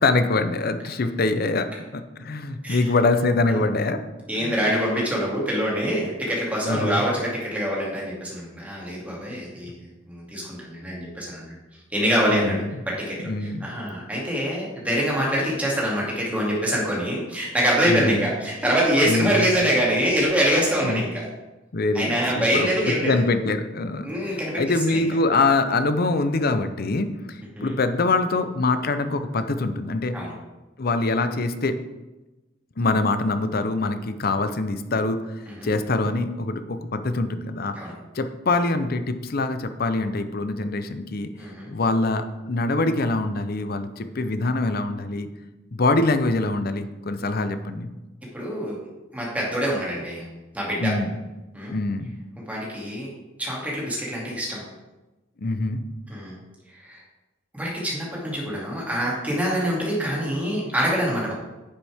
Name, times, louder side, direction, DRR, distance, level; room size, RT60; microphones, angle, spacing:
voice 1, 0.0-4.0 4.4-4.5 6.6-7.1 12.3-12.8 13.2-13.7 17.9-18.3 19.0-19.4 20.8-21.0 21.7-30.2 30.8-31.8 32.8-35.2 35.6-37.7 38.1-41.3 41.7-45.3 45.7-47.9 50.8-51.1 51.7-52.1 55.4-55.8, left 3 dB, 50° left, 9 dB, 0.7 m, -24 dB
voice 2, 4.3-11.5 11.9-21.2 21.9-23.2 24.0-24.6 24.9-25.0 27.5-27.7 30.1-30.3 35.5-35.7 37.7-37.9 41.4-41.7 48.3-48.8 49.1-50.3 50.5-50.9 51.5-51.8 52.5-53.1 53.4-54.6 56.1-56.4 56.8-57.0 57.5-61.3, equal, 10° right, -5 dB, 2.6 m, -25 dB
9.9 x 7.4 x 3.6 m, 1.1 s
head